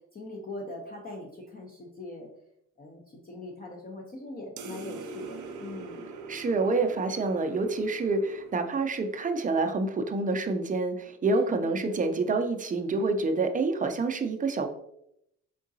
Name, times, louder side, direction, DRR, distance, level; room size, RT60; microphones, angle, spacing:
voice 1, 0.1-2.3 2.8-6.0 11.8-12.1, left 2 dB, 30° left, -1 dB, 0.7 m, -42 dB
sound 1, 4.6-9.4, right 3 dB, 80° right, 0.6 m, -43 dB
voice 2, 6.3-14.7, right 3 dB, 25° right, 7 dB, 0.5 m, -27 dB
3.7 x 3.7 x 2.6 m, 0.76 s
cardioid pair, 90°, 30 cm